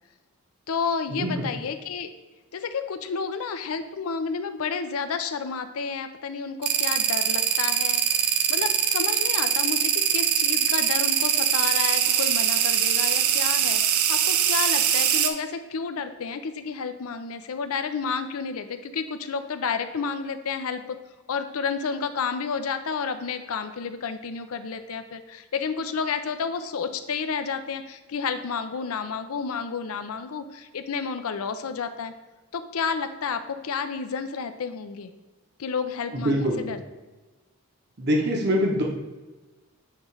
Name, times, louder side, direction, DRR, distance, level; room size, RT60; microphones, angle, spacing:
voice 1, 0.7-2.1 2.5-21.0 21.3-32.1 32.5-35.1 35.6-36.8, left 5 dB, 75° left, 9 dB, 0.5 m, -31 dB
sound 1, 6.6-15.3, right 9 dB, 90° right, 0.6 m, -22 dB
voice 2, 36.1-36.6 38.0-38.8, equal, 50° right, -1 dB, 1.1 m, -23 dB
8.7 x 3.1 x 4.8 m, 1.2 s
head